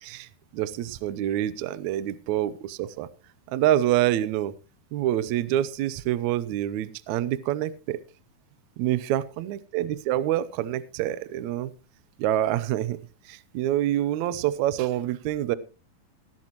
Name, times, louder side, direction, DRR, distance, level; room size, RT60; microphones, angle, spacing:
voice 1, 0.0-3.1 3.5-4.5 4.9-8.0 8.8-11.7 12.2-13.0 13.3-15.6, right 12 dB, 85° right, 16 dB, 1.6 m, -26 dB
17.0 x 12.0 x 3.0 m, 0.32 s
omnidirectional pair, 4.3 m